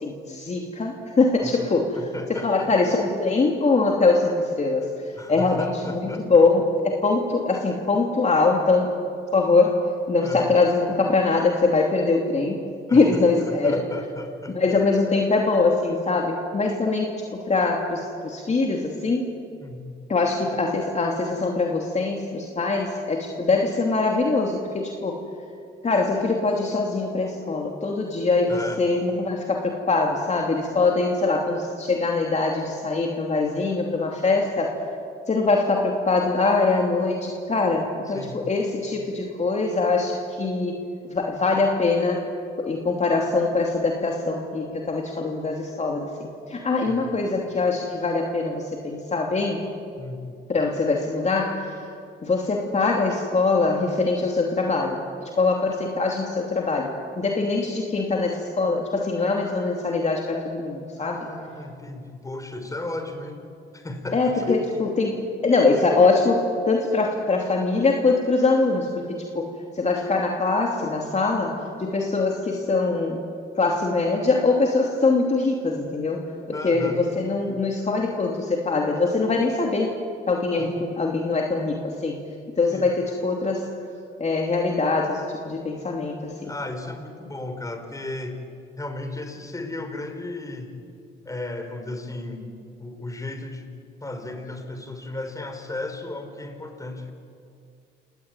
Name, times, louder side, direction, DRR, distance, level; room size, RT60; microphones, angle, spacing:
voice 1, 0.0-2.0 2.3-8.9 9.3-12.6 12.9-13.8 14.5-19.3 20.1-25.2 25.8-34.7 35.3-40.8 41.1-42.2 42.6-49.6 50.5-51.9 52.2-61.3 64.1-73.2 73.6-79.9 80.3-82.2 82.5-83.7 84.2-86.5, left 3 dB, 35° left, 1 dB, 2.9 m, -23 dB
voice 2, 1.9-2.7 5.2-6.4 10.2-10.5 12.9-14.6 19.6-19.9 28.5-28.8 38.1-38.4 46.9-47.1 50.0-50.2 61.0-63.5 63.7-64.7 76.5-77.0 80.5-80.7 82.7-82.9 86.4-88.4 88.8-90.7 91.2-92.5 92.8-93.7 94.0-97.1, left 2 dB, 15° left, 6 dB, 4.3 m, -34 dB
28.5 x 19.0 x 9.1 m, 2.4 s
cardioid pair, 90°, 20 cm